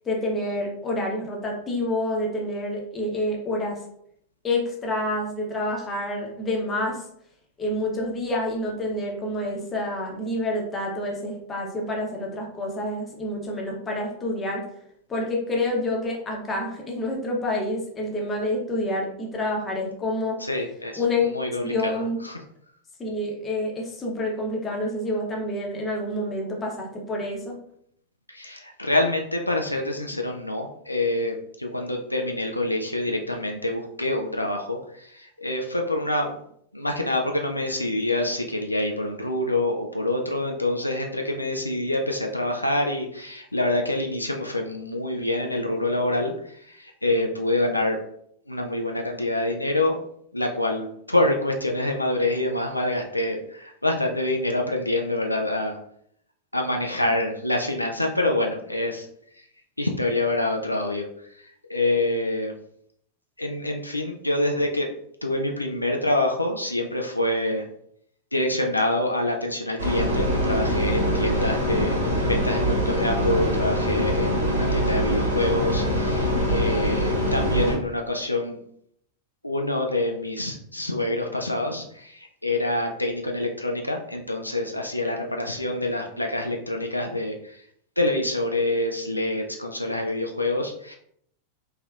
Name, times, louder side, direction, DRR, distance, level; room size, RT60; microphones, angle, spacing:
voice 1, 0.0-3.8 4.4-7.1 7.6-14.6 15.1-20.5 20.9-21.2 21.6-22.2 23.0-27.6 57.0-57.1, left 1 dB, 20° left, -1 dB, 0.9 m, -28 dB
voice 2, 20.4-21.0 21.3-22.4 28.3-36.4 36.7-48.0 48.5-50.0 50.3-55.8 56.5-59.1 59.8-61.1 61.3-62.5 63.4-64.9 65.2-67.7 68.3-72.0 72.2-78.6 79.4-87.6 88.0-90.9, left 1 dB, 85° left, 2 dB, 0.3 m, -26 dB
sound 1, 69.8-77.7, equal, 70° right, 1.2 m, -24 dB
3.2 x 2.7 x 2.3 m, 0.69 s
figure-of-eight pair, 90°, 0 cm